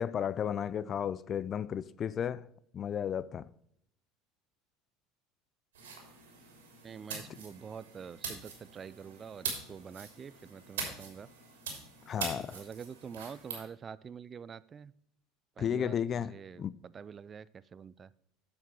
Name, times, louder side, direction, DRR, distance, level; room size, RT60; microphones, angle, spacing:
voice 1, 0.0-2.5 2.7-3.5 7.3-7.4 12.1-12.6 15.6-16.8, left 8 dB, 40° left, 0.4 m, -33 dB
sound 1, 5.7-13.6, right 5 dB, 85° right, 2.9 m, -43 dB
voice 2, 6.8-11.3 12.1-14.9 15.6-15.9 16.3-16.6 16.9-17.5 17.7-18.1, right 7 dB, 35° right, 0.3 m, -46 dB
9.1 x 5.9 x 4.3 m
hypercardioid pair, 80°, 0 cm